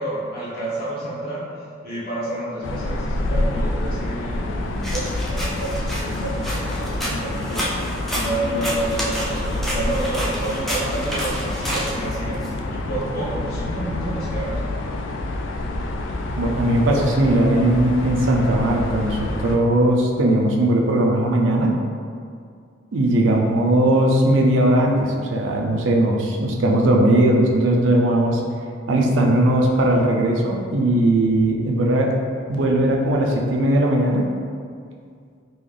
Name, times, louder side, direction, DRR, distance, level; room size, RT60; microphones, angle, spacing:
voice 1, 0.0-1.4 1.8-14.6, right 1 dB, 50° left, -9 dB, 1.0 m, -29 dB
sound 1, 2.6-19.6, left 2 dB, 80° left, 0.3 m, -27 dB
sound 2, 4.8-12.5, equal, ahead, 0.4 m, -30 dB
voice 2, 16.4-21.8 22.9-28.4 28.9-32.1 32.5-34.3, right 1 dB, 80° right, 0 dB, 0.5 m, -18 dB
3.8 x 2.4 x 3.3 m, 2.2 s
head